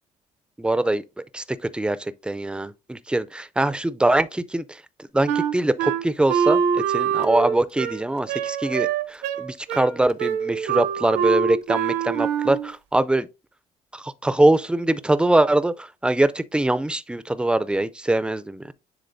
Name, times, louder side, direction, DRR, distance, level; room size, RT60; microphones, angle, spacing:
voice 1, 0.6-1.0 1.3-1.4 1.7-2.0 2.2-4.6 5.1-13.3 13.9-18.7, right 1 dB, 5° right, 0.4 m, -23 dB
Wind instrument woodwind instrument, 5.3-12.7, right 8 dB, 80° right, 0.7 m, -24 dB
10.0 x 3.5 x 2.6 m
cardioid pair, 110°, 17 cm